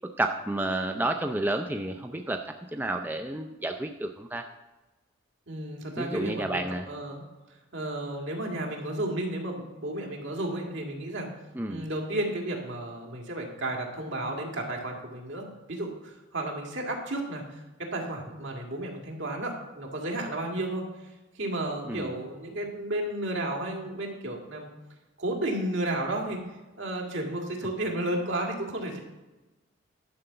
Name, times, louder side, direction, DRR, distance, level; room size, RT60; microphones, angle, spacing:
voice 1, 0.2-2.4 2.7-4.4 6.0-6.9 11.5-11.8 21.8-22.1, right 1 dB, 10° right, 4 dB, 0.4 m, -30 dB
voice 2, 5.5-6.6 6.9-7.2 7.7-11.3 11.7-20.9 21.4-24.7 25.2-26.4 26.8-29.0, right 1 dB, 70° right, 0 dB, 2.1 m, -32 dB
11.5 x 5.0 x 6.8 m, 1.1 s
head